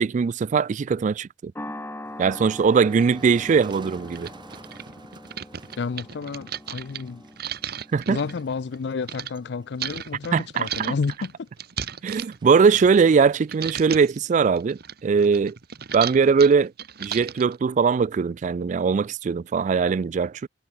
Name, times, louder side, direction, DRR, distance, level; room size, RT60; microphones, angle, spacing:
voice 1, 0.0-1.5 2.2-4.3 7.9-8.2 10.3-10.9 12.0-15.5 15.9-16.7 17.0-20.5, right 5 dB, 40° right, 0.3 m, -20 dB
sound 1, 1.5-10.1, left 1 dB, 15° left, 3.1 m, -43 dB
Motor vehicle (road), 2.0-14.7, right 2 dB, 25° right, 1.0 m, -50 dB
sound 2, 3.0-3.1 3.7-3.8 4.1-9.3 9.8-13.2 13.5-14.2 14.6-17.6, right 9 dB, 60° right, 1.3 m, -35 dB
voice 2, 5.8-7.2 8.1-11.5, left 4 dB, 65° left, 0.5 m, -30 dB
head